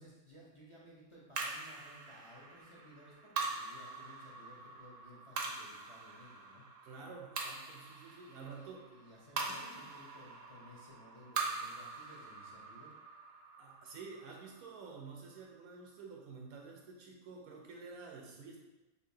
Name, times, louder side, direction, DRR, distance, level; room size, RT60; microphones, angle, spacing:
voice 1, 0.0-6.6 8.3-12.9, equal, 25° left, -6 dB, 0.7 m, -58 dB
sound 1, 1.3-15.9, right 4 dB, 65° right, 1.0 m, -44 dB
voice 2, 6.8-8.8 9.4-9.8 13.6-18.6, right 4 dB, 80° right, -1 dB, 1.3 m, -50 dB
6.7 x 2.8 x 2.7 m, 1.0 s
omnidirectional pair, 1.5 m